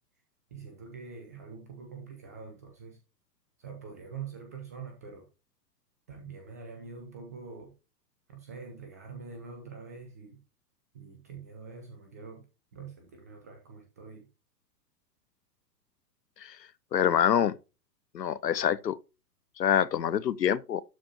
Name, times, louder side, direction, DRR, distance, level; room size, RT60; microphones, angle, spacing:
voice 1, 0.5-3.0 3.6-5.3 6.1-7.7 8.3-10.4 10.9-12.5 12.7-14.3, right 5 dB, 10° right, 0.4 m, -45 dB
voice 2, 16.9-17.6 18.1-19.0 19.6-20.8, left 9 dB, 75° left, 0.8 m, -26 dB
12.0 x 4.3 x 2.8 m
figure-of-eight pair, 110°, 50 cm